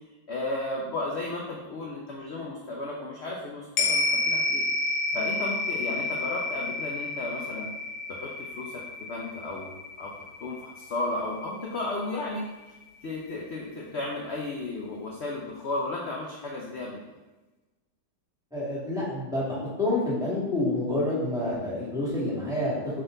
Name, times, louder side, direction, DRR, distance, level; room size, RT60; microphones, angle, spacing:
voice 1, 0.3-4.6 5.1-7.7 8.1-8.8 9.1-10.1 10.4-12.5 13.0-17.0, left 2 dB, 50° left, -2 dB, 0.9 m, -34 dB
sound 1, 3.8-12.3 12.7-12.8, left 2 dB, 75° left, 1.5 m, -30 dB
voice 2, 18.5-23.0, left 2 dB, ahead, -8 dB, 2.2 m, -28 dB
7.9 x 4.2 x 3.9 m, 1.1 s
omnidirectional pair, 1.9 m